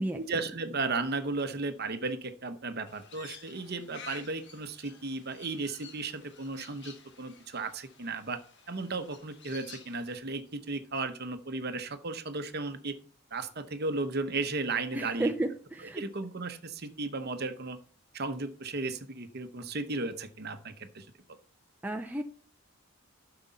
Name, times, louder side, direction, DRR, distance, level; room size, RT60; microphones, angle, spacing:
voice 1, 0.1-8.4 8.7-13.0 13.3-15.3 15.8-17.8 18.1-21.1, right 3 dB, 45° right, 9 dB, 0.9 m, -35 dB
Crow, 2.9-10.2, left 6 dB, 50° left, 1.6 m, -52 dB
voice 2, 14.9-16.0 21.8-22.2, right 1 dB, 10° right, 3 dB, 0.5 m, -32 dB
11.0 x 6.7 x 4.1 m, 0.43 s
head